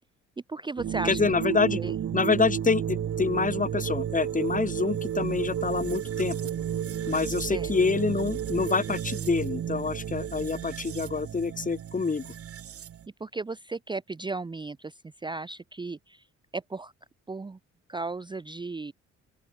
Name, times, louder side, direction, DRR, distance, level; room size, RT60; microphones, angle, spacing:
voice 1, 0.5-1.4 1.7-2.0 7.5-7.7 13.2-16.3 16.5-16.9 17.3-17.6 17.9-18.9, right 3 dB, 15° right, 0.6 m, -35 dB
sound 1, 0.8-13.1, right 9 dB, 50° right, 1.1 m, -32 dB
voice 2, 1.0-1.8 2.1-6.4 7.1-12.3, left 4 dB, 25° left, 1.7 m, -27 dB
open air
cardioid pair, 90°, 30 cm